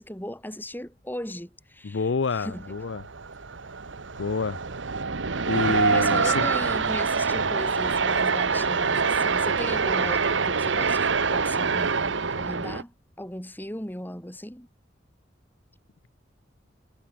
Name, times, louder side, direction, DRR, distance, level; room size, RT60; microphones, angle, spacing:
voice 1, 0.0-2.8 5.9-14.7, left 1 dB, 10° left, 6.0 m, -37 dB
voice 2, 1.8-3.0 4.2-4.6 5.5-6.5 7.3-7.5, left 4 dB, 80° left, 0.6 m, -28 dB
sound 1, 2.5-12.8, right 5 dB, 90° right, 1.2 m, -25 dB
head